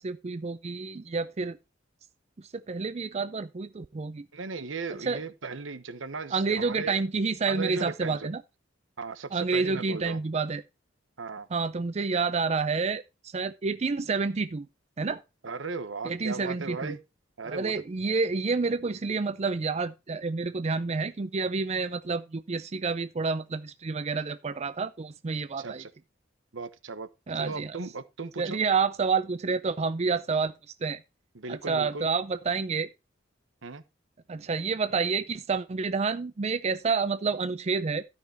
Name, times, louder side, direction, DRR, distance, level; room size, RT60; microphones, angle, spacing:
voice 1, 0.0-1.6 2.4-4.3 5.0-5.2 6.3-8.4 9.3-10.6 11.5-14.7 15.0-15.2 16.0-17.0 17.4-25.8 27.3-27.8 28.4-30.5 30.8-31.0 31.5-32.9 34.3-38.0, right 4 dB, 35° right, 0.5 m, -29 dB
voice 2, 4.3-7.0 7.5-8.3 9.0-10.2 11.2-11.5 15.4-17.0 17.4-17.7 25.6-25.9 26.5-27.1 27.3-28.6 31.3-32.1 33.6-33.8, right 4 dB, 85° right, 1.0 m, -37 dB
13.0 x 5.9 x 4.4 m
head